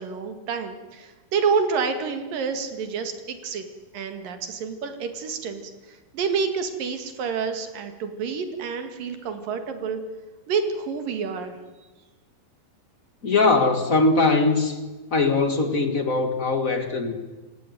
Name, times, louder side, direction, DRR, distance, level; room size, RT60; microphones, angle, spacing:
voice 1, 0.0-3.7 3.9-10.0 10.5-11.6, right 5 dB, 65° right, 7 dB, 3.7 m, -28 dB
voice 2, 13.2-14.8 15.1-17.1, left 3 dB, 40° left, 7 dB, 1.1 m, -21 dB
27.5 x 16.0 x 9.3 m, 1.2 s
omnidirectional pair, 4.3 m